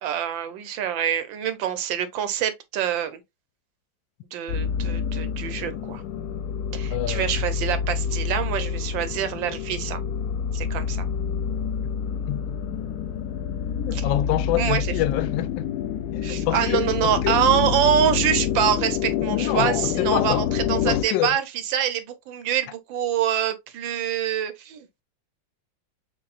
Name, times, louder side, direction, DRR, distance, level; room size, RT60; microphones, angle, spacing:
voice 1, 0.0-3.2 4.3-6.0 6.7-10.0 10.5-11.0 13.9-14.1 14.6-14.9 16.2-25.0, right 9 dB, 90° right, 1.5 m, -25 dB
sound 1, 4.5-21.0, left 8 dB, 70° left, 1.0 m, -27 dB
voice 2, 6.9-7.2 12.3-12.6 13.7-15.7 16.1-17.4 19.3-20.5 20.9-21.3, left 14 dB, 90° left, 1.3 m, -27 dB
6.8 x 2.7 x 2.4 m
omnidirectional pair, 2.0 m